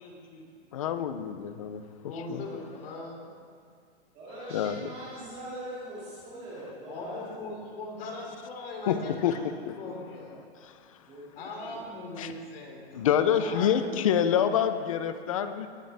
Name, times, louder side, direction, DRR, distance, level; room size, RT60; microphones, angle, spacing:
voice 1, 0.0-0.4 2.0-3.3 6.9-10.4 11.4-13.0 13.3-14.0, left 2 dB, 55° left, 0 dB, 3.0 m, -40 dB
voice 2, 0.7-1.8 2.3-2.4 4.5-4.9 8.9-9.0 9.2-9.4 9.6-9.7 10.6-10.7 12.2-12.3 12.9-15.7, left 9 dB, 30° left, 10 dB, 0.5 m, -26 dB
voice 3, 4.1-7.5 11.0-11.9, right 1 dB, 20° right, -8 dB, 2.3 m, -42 dB
19.5 x 9.0 x 3.4 m, 2.2 s
hypercardioid pair, 170°, 34 cm